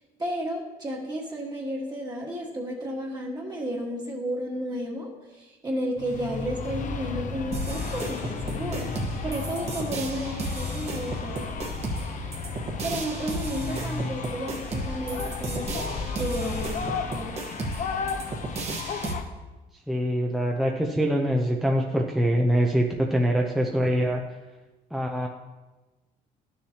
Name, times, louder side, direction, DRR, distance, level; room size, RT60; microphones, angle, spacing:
voice 1, 0.2-8.9 9.2-11.5 12.8-17.4, right 1 dB, 25° right, -3 dB, 1.6 m, -32 dB
sound 1, 6.0-19.2, left 5 dB, 50° left, 0.8 m, -34 dB
sound 2, 7.5-19.1, right 2 dB, 40° right, 1.3 m, -34 dB
voice 2, 19.9-24.2 24.9-25.3, equal, ahead, -1 dB, 0.6 m, -24 dB
11.5 x 7.0 x 2.9 m, 1.2 s
cardioid pair, 110°, 17 cm